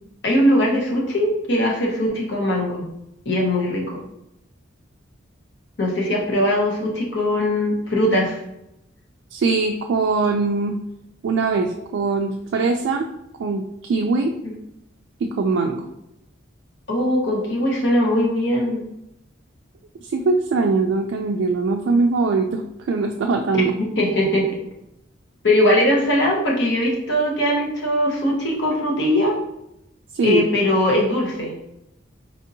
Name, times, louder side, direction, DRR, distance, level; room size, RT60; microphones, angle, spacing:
voice 1, 0.2-2.8 3.2-4.0 5.8-8.4 16.9-18.8 23.5-24.5 25.4-29.3 30.2-31.5, left 1 dB, 65° left, -2 dB, 1.0 m, -20 dB
voice 2, 9.3-10.8 11.2-13.1 13.4-14.3 15.2-15.9 20.0-22.6 22.9-23.7 30.1-30.4, right 3 dB, 75° right, 2 dB, 0.3 m, -21 dB
4.2 x 2.7 x 2.6 m, 0.84 s
head